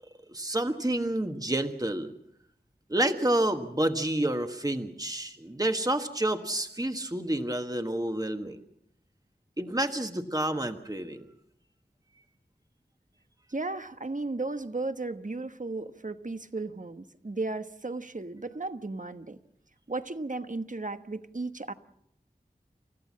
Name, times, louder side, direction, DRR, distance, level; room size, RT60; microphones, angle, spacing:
voice 1, 0.3-2.1 2.9-8.6 9.6-11.3, right 1 dB, 20° right, 6 dB, 1.5 m, -29 dB
voice 2, 13.5-19.4 19.9-21.7, right 3 dB, 50° right, 10 dB, 1.2 m, -35 dB
29.0 x 14.5 x 7.5 m, 0.74 s
wide cardioid pair, 40°, 17 cm